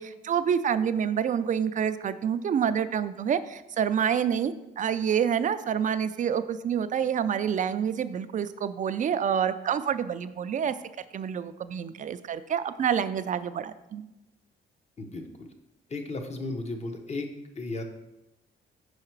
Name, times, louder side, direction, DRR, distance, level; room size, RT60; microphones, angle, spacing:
voice 1, 0.0-10.7 11.1-14.0, right 8 dB, 40° right, 12 dB, 0.4 m, -27 dB
voice 2, 15.0-15.5 15.9-17.3 17.6-17.8, left 2 dB, 35° left, 5 dB, 0.9 m, -34 dB
5.6 x 4.8 x 4.5 m, 0.93 s
cardioid pair, 90°, 20 cm